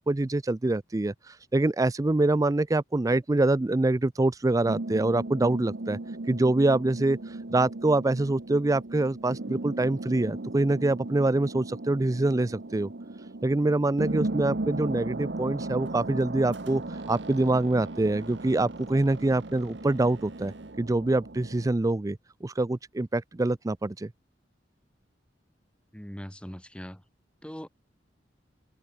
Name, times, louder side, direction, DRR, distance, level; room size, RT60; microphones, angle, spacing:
voice 1, 0.0-6.0 6.3-12.9 13.4-24.1, right 2 dB, 20° right, 0.4 m, -25 dB
sound 1, 4.6-21.7, right 2 dB, 65° right, 1.1 m, -37 dB
Squeak, 15.6-20.9, right 5 dB, 85° right, 7.8 m, -58 dB
voice 2, 25.9-27.0 27.4-27.7, equal, 5° left, 1.7 m, -40 dB
head